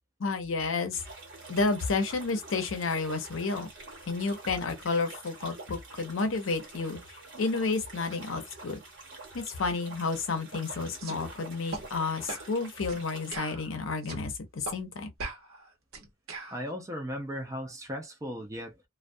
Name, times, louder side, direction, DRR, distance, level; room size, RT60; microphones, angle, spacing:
voice 1, 0.2-1.0 1.5-3.7 4.1-7.0 7.4-8.8 9.3-15.1, left 4 dB, 65° left, 0.6 m, -31 dB
sound 1, 0.9-13.4, right 2 dB, 60° right, 1.1 m, -47 dB
sound 2, 11.0-11.2 11.7-11.9 12.3-12.5 12.9-13.0 13.3-14.3 14.7-14.8 15.2-16.6, right 3 dB, 80° right, 0.9 m, -39 dB
voice 2, 16.5-18.7, equal, 15° right, 0.4 m, -36 dB
2.2 x 2.2 x 2.6 m
head